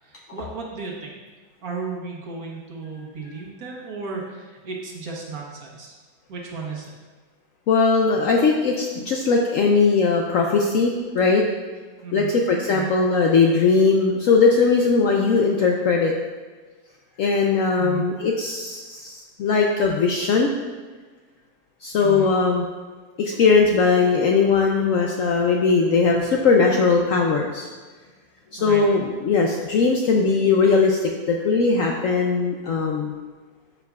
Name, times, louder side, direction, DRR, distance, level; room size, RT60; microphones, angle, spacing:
voice 1, 0.0-1.1 1.6-5.9 6.3-6.9 12.0-12.4 12.6-12.9 17.8-18.1 22.0-22.3 28.6-28.8, right 4 dB, 60° right, -2 dB, 1.5 m, -34 dB
voice 2, 7.7-11.4 12.1-16.1 17.2-20.5 21.8-22.6 23.2-27.7 28.5-33.1, left 4 dB, 70° left, 0 dB, 0.8 m, -19 dB
12.0 x 4.6 x 2.3 m, 1.4 s
omnidirectional pair, 1.8 m